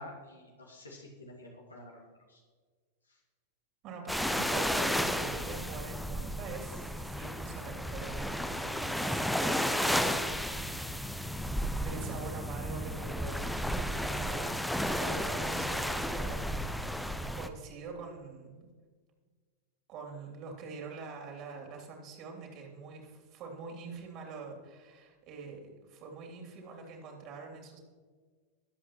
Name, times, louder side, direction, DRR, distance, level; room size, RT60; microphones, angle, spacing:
voice 1, 0.0-2.4, left 1 dB, 75° left, 0 dB, 2.0 m, -49 dB
voice 2, 3.8-11.3 11.8-14.5 14.8-16.5 17.3-18.7 19.9-27.8, right 4 dB, 40° right, 1 dB, 3.0 m, -45 dB
sound 1, 4.1-17.5, equal, ahead, 0.7 m, -33 dB
22.0 x 8.0 x 3.1 m, 1.5 s
figure-of-eight pair, 90°, 0 cm